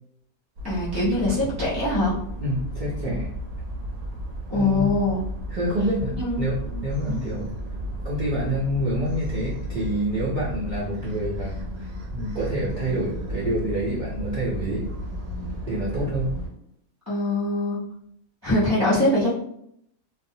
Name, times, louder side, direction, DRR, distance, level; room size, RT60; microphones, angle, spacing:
voice 1, 0.6-2.2 4.5-5.2 6.1-7.2 17.1-17.8 18.4-19.3, left 1 dB, 25° left, -7 dB, 0.3 m, -23 dB
sound 1, 0.6-16.5, equal, 80° right, 1.0 m, -33 dB
voice 2, 2.4-3.3 4.5-5.0 5.5-7.5 8.0-11.5 11.8-14.9 15.7-16.4, right 1 dB, 60° right, -7 dB, 0.4 m, -27 dB
2.4 x 2.0 x 2.6 m, 0.72 s
omnidirectional pair, 1.5 m